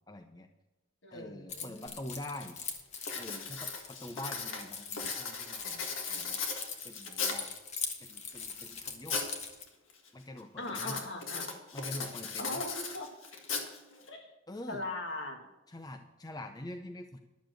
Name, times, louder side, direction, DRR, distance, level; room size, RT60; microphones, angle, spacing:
voice 1, 0.1-0.5 1.1-2.6 3.2-6.4 6.8-7.5 8.0-9.3 10.1-11.0 11.7-12.6 14.5-14.8 15.7-17.2, left 1 dB, 20° left, 6 dB, 0.5 m, -45 dB
voice 2, 1.0-1.9 10.6-11.5 12.4-13.1 14.1-14.3 14.7-15.5, left 2 dB, 60° left, 4 dB, 1.6 m, -39 dB
Keys jangling, 1.5-9.6, left 5 dB, 35° left, 1.1 m, -42 dB
Writing, 1.9-2.0 2.4-2.7 3.0-7.6 8.1-9.4 9.7-10.1 10.7-14.1, left 5 dB, 80° left, 1.7 m, -38 dB
11.5 x 7.2 x 7.6 m, 1.0 s
head